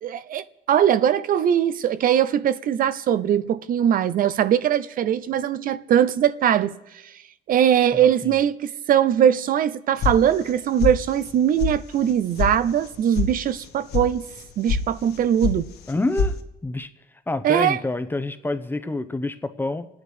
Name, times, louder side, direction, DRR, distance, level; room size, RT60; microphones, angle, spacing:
voice 1, 0.0-6.7 7.5-14.2 14.6-15.6 17.4-17.8, right 9 dB, 55° right, 0.7 m, -21 dB
voice 2, 8.0-8.4 15.9-16.9 17.3-19.9, left 2 dB, 10° left, 0.9 m, -27 dB
sound 1, 10.0-10.5 10.8-11.3 11.6-11.7 12.1-12.5 12.8-13.3 13.6-14.0 14.4-14.8 15.1-15.6 15.8-16.3, left 5 dB, 70° left, 1.9 m, -24 dB
27.5 x 9.5 x 5.0 m
cardioid pair, 110°, 17 cm